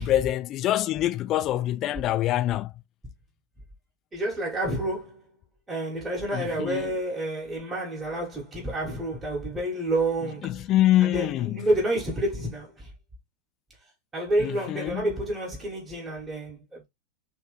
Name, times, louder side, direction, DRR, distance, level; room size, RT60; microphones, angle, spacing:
voice 1, 0.0-2.7 6.3-6.9 10.4-11.6 14.4-15.1, left 13 dB, 35° left, 0.3 m, -25 dB
voice 2, 4.1-5.2 5.7-10.6 11.0-12.9 14.1-16.9, right 1 dB, 10° right, 1.2 m, -29 dB
3.1 x 2.9 x 3.1 m
figure-of-eight pair, 90°, 0 cm